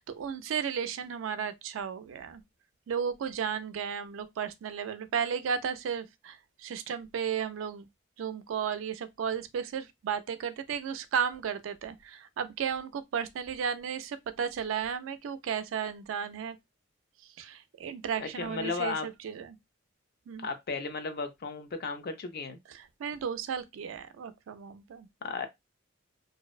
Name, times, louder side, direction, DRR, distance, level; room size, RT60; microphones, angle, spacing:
voice 1, 0.0-2.4 2.9-7.9 8.2-16.6 17.4-19.6 20.3-20.5 22.7-25.1, right 7 dB, 75° right, 0.3 m, -34 dB
voice 2, 18.2-19.1 20.4-22.6 25.2-25.5, left 4 dB, 50° left, 0.4 m, -34 dB
2.6 x 2.1 x 2.3 m
head